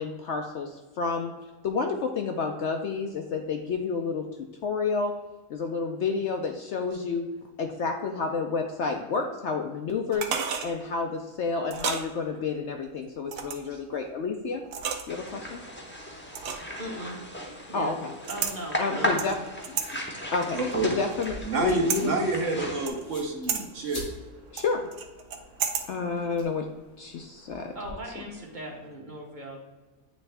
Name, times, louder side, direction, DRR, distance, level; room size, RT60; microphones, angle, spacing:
voice 1, 0.0-1.3 1.6-4.3 4.6-5.1 5.5-7.3 7.6-10.3 10.6-14.6 15.1-15.6 17.7-18.1 18.8-19.4 19.7-20.0 20.3-22.2 22.6-22.7 24.5-24.9 25.9-26.7 27.0-27.7, left 4 dB, 65° left, 3 dB, 0.7 m, -30 dB
sound 1, 10.1-10.7 11.7-12.0 13.3-13.7 14.6-15.3 16.3-16.8 18.2-18.6 19.2-19.9 20.4-21.3 21.7-22.0 22.9-23.2 23.5-23.6 24.6-25.9 26.2-26.3, right 7 dB, 90° right, 1.2 m, -32 dB
sound 2, 15.1-22.9, equal, 10° left, 0.6 m, -36 dB
voice 2, 16.8-17.2 17.7-17.9 18.3-19.3 27.7-29.6, right 1 dB, 35° right, 0 dB, 1.0 m, -38 dB
voice 3, 20.2-20.9 21.4-24.1, right 3 dB, 60° right, 2 dB, 1.1 m, -29 dB
sound 3, 21.1-27.9, left 1 dB, 85° left, 2.1 m, -47 dB
8.7 x 3.4 x 3.3 m, 1.2 s
omnidirectional pair, 1.6 m